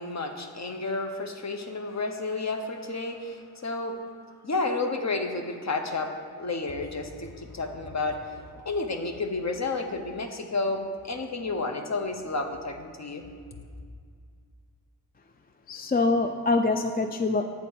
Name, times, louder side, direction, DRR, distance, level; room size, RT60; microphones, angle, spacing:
voice 1, 0.0-4.0 4.4-13.2, left 3 dB, 40° left, 5 dB, 0.9 m, -31 dB
voice 2, 15.7-17.5, left 3 dB, 25° left, 7 dB, 0.3 m, -24 dB
8.2 x 4.2 x 7.0 m, 2.1 s
cardioid pair, 60°, 42 cm